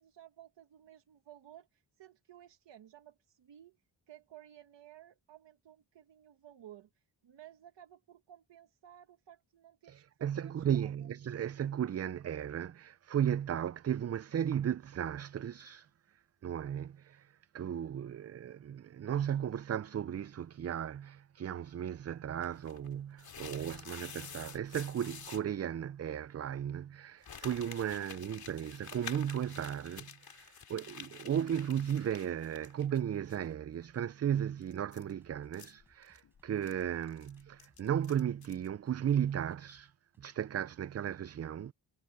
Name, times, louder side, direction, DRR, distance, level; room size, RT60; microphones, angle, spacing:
voice 1, 0.0-3.8 4.1-11.1, right 11 dB, 90° right, 1.6 m, -56 dB
voice 2, 9.9-41.7, right 9 dB, 40° right, 0.4 m, -35 dB
sound 1, 22.4-25.4 27.2-33.0 33.3-33.4 34.6-38.7, left 7 dB, 60° left, 3.1 m, -49 dB
sound 2, 33.5-38.2 38.5-40.3, right 1 dB, 5° right, 7.9 m, -70 dB
wide cardioid pair, 110°, 42 cm